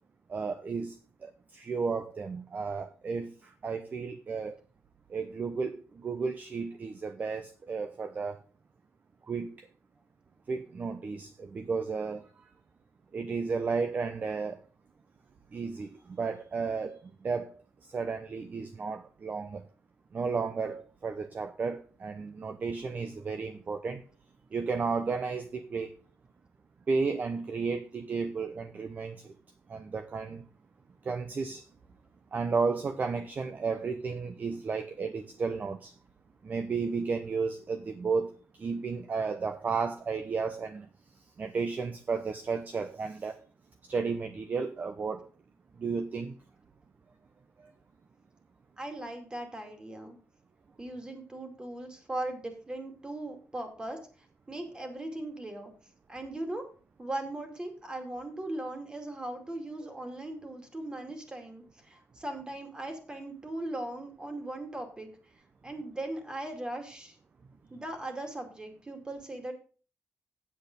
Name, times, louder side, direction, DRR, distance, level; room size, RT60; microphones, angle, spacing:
voice 1, 0.3-4.6 5.1-8.4 9.3-9.7 10.5-12.3 13.1-14.6 15.5-17.5 17.8-19.6 20.1-24.0 24.5-25.9 26.9-29.3 29.7-30.5 31.0-31.6 32.3-35.9 36.4-40.9 41.4-43.4 43.8-45.3 45.8-46.3 47.6-47.7, right 4 dB, 35° right, 0.7 m, -33 dB
voice 2, 48.8-50.2 50.8-54.0 54.5-55.7 56.1-56.7 57.0-65.1 65.6-67.2 67.7-69.5, right 1 dB, 15° right, 2.4 m, -38 dB
8.7 x 7.8 x 5.2 m
cardioid pair, 135°, 5 cm